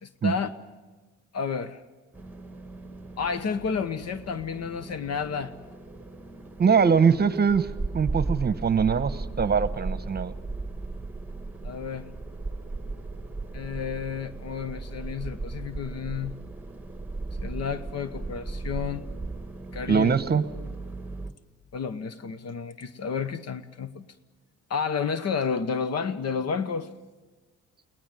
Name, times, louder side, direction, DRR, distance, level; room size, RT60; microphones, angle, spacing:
voice 1, 0.0-0.5 1.3-1.8 3.2-5.5 11.6-12.1 13.5-16.3 17.4-19.0 19.7-20.1 21.7-24.1 24.7-26.9, left 6 dB, 55° left, 1.0 m, -31 dB
sound 1, 2.1-21.3, right 3 dB, 5° right, 1.6 m, -36 dB
voice 2, 6.6-7.7 7.9-10.3 19.9-20.4, right 6 dB, 35° right, 1.1 m, -22 dB
22.0 x 18.5 x 9.0 m
cardioid pair, 90°, 30 cm